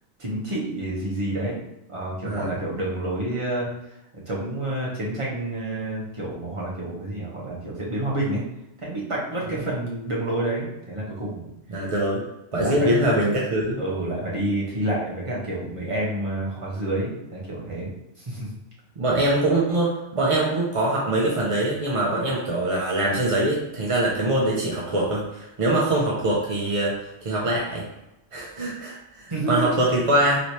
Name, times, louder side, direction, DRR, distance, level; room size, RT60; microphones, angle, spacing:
voice 1, 0.2-1.6 1.9-3.7 4.1-8.4 8.8-11.5 12.6-12.9 13.8-17.9 18.2-18.5 29.3-29.7, right 1 dB, 30° right, -5 dB, 0.8 m, -29 dB
voice 2, 2.2-2.6 11.7-12.2 12.5-13.8 19.0-27.9 28.3-30.4, right 1 dB, 50° right, -4 dB, 0.4 m, -23 dB
3.1 x 3.1 x 2.7 m, 0.91 s
omnidirectional pair, 1.4 m